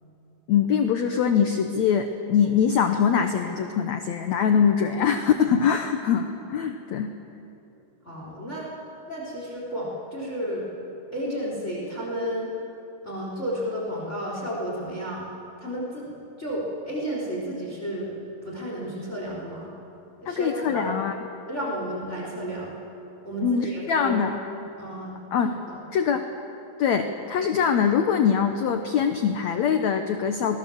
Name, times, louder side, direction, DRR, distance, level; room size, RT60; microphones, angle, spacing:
voice 1, 0.5-7.1 20.2-21.1 23.4-24.3 25.3-25.6 25.9-26.3 26.8-30.6, left 7 dB, 90° left, 6 dB, 1.5 m, -23 dB
voice 2, 8.0-8.7 9.1-10.7 11.1-12.5 13.0-15.3 15.6-16.1 16.4-18.1 18.4-19.7 20.2-21.0 21.4-22.8 23.2-24.2 24.8-25.1 25.4-25.8, equal, 15° left, -3 dB, 4.0 m, -32 dB
28.0 x 20.5 x 7.2 m, 2.9 s
omnidirectional pair, 4.6 m